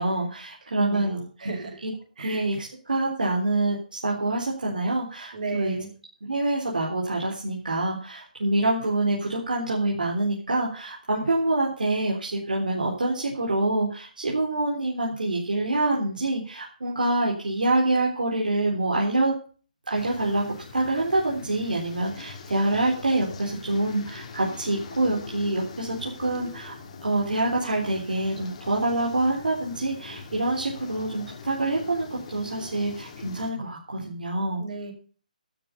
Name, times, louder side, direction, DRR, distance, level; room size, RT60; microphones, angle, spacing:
voice 1, 0.0-1.5 1.8-1.9 2.2-5.8 6.2-19.3 19.9-20.4 20.7-26.7 27.0-34.6, right 2 dB, 75° right, -2 dB, 3.9 m, -26 dB
voice 2, 0.7-1.8 2.2-2.4 5.3-5.9 34.6-34.9, right 3 dB, 60° right, 3 dB, 5.8 m, -35 dB
sound 1, 19.9-33.5, left 5 dB, 50° left, 2.8 m, -42 dB
12.5 x 8.5 x 7.0 m, 0.40 s
figure-of-eight pair, 140°, 5 cm